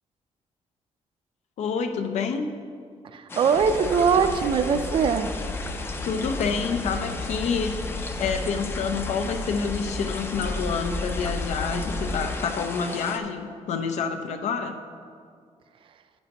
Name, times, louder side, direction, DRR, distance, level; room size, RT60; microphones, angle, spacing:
voice 1, 1.6-2.5 6.0-7.8 8.2-14.8, left 5 dB, 90° left, 6 dB, 0.7 m, -28 dB
voice 2, 3.1-5.3, right 6 dB, 50° right, 9 dB, 0.4 m, -22 dB
sound 1, 3.3-13.2, left 3 dB, 20° left, 0.4 m, -36 dB
sound 2, 3.5-12.2, left 2 dB, 60° left, 1.3 m, -34 dB
9.8 x 9.0 x 2.9 m, 2.1 s
wide cardioid pair, 180°, 11 cm